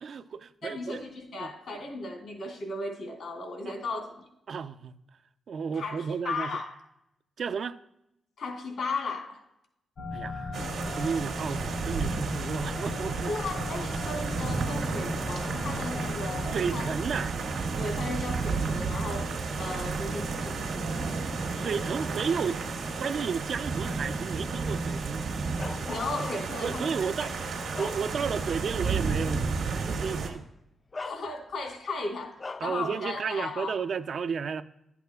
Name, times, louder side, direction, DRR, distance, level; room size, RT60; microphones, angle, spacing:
voice 1, 0.0-1.0 1.4-1.5 3.7-3.8 4.5-5.0 5.5-6.6 7.4-7.8 10.1-13.3 16.5-17.4 21.5-22.6 23.0-25.2 26.6-27.3 27.8-29.4 29.8-30.5 32.6-34.6, right 6 dB, 65° right, 0.4 m, -32 dB
voice 2, 0.6-4.2 5.7-6.8 8.4-9.4 13.3-16.9 17.8-21.9 25.9-27.3 31.0-32.3 32.6-33.8, left 3 dB, 80° left, 3.0 m, -36 dB
sound 1, 10.0-16.6, left 2 dB, 60° left, 0.8 m, -37 dB
sound 2, 10.5-30.3, right 4 dB, 85° right, 1.6 m, -32 dB
Bark, 25.6-26.7 27.3-28.5 28.9-29.1 30.2-30.4 30.9-31.7 32.4-32.8, left 3 dB, 35° left, 0.3 m, -41 dB
11.5 x 8.4 x 2.3 m
cardioid pair, 75°, 0 cm